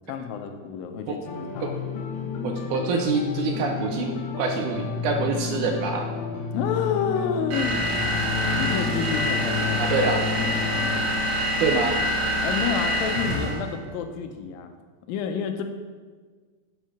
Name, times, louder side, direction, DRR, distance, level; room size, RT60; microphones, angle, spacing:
voice 1, 0.1-1.7 6.5-7.8 8.6-9.9 12.4-14.7 15.1-15.6, left 7 dB, 85° left, 6 dB, 2.5 m, -29 dB
sound 1, 1.3-11.0, left 6 dB, 70° left, 2.0 m, -31 dB
voice 2, 2.4-6.1 9.8-10.2 11.6-12.0, right 4 dB, 75° right, 4 dB, 1.9 m, -26 dB
sound 2, 7.5-13.7, equal, 55° right, 2.1 m, -26 dB
7.3 x 6.8 x 6.3 m, 1.5 s
omnidirectional pair, 4.0 m